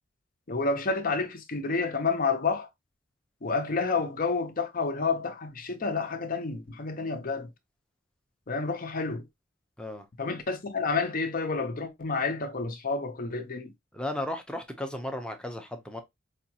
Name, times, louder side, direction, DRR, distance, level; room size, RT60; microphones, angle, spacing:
voice 1, 0.5-2.7 3.4-7.5 8.5-9.3 10.2-13.7, left 4 dB, 45° left, 0.7 m, -29 dB
voice 2, 13.9-16.0, left 1 dB, 5° left, 0.6 m, -35 dB
5.0 x 2.3 x 2.8 m
head